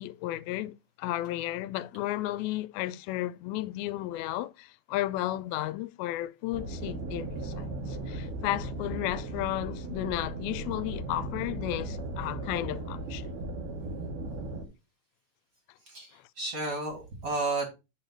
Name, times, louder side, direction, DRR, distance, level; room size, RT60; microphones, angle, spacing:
voice 1, 0.0-13.3 16.1-16.2, left 15 dB, 85° left, 2.3 m, -33 dB
sound 1, 6.5-14.7, right 2 dB, 90° right, 3.3 m, -37 dB
voice 2, 16.4-17.7, right 3 dB, 40° right, 1.3 m, -32 dB
7.9 x 3.2 x 6.0 m
omnidirectional pair, 4.3 m